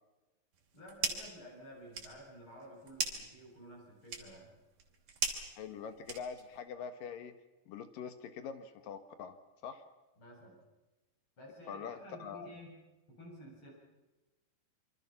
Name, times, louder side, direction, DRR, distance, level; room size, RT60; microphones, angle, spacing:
sound 1, 0.5-1.4 1.7-6.6, right 5 dB, 50° right, 4.2 m, -40 dB
voice 1, 0.7-4.5 10.2-10.6 11.4-12.8 13.1-13.7, equal, 30° left, -1 dB, 8.1 m, -52 dB
voice 2, 5.6-7.3 7.7-9.4 9.6-9.8 11.7-12.5, left 7 dB, 65° left, 10 dB, 2.7 m, -44 dB
26.5 x 25.0 x 5.9 m, 1.1 s
omnidirectional pair, 5.0 m